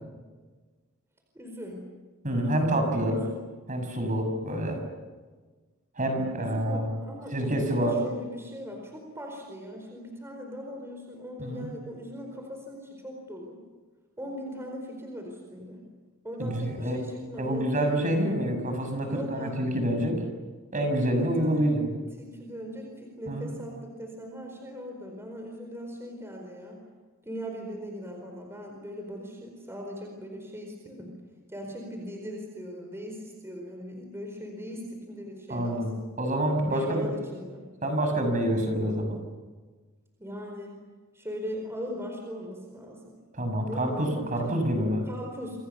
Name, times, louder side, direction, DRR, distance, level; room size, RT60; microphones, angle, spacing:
voice 1, 1.3-1.9 3.1-3.3 6.4-13.6 14.2-15.8 16.2-17.9 19.0-19.6 21.2-21.7 22.2-26.8 27.2-31.2 31.5-36.0 36.7-37.7 40.2-40.8 41.1-43.1 43.6-44.6 45.1-45.6, equal, 10° right, 2 dB, 4.6 m, -39 dB
voice 2, 2.2-3.2 3.7-4.8 6.0-6.9 7.3-7.9 11.4-11.7 16.4-17.0 17.4-20.2 20.7-21.9 23.3-23.5 35.5-35.9 36.2-37.1 37.8-39.2 43.3-45.0, right 1 dB, 35° right, 5 dB, 6.5 m, -27 dB
28.5 x 27.5 x 7.1 m, 1.4 s
head